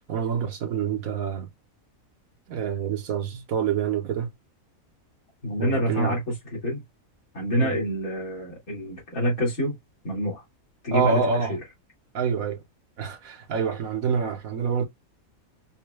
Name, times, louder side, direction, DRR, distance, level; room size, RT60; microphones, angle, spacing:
voice 1, 0.1-1.5 2.5-4.3 5.6-6.2 7.6-7.7 10.9-11.5 12.1-12.6 13.0-14.8, right 6 dB, 75° right, 1.4 m, -26 dB
voice 2, 5.4-6.3 6.6-6.8 7.3-9.7 10.0-10.4 10.8-11.6, equal, 90° left, 2.6 m, -27 dB
5.4 x 2.2 x 3.3 m
omnidirectional pair, 1.5 m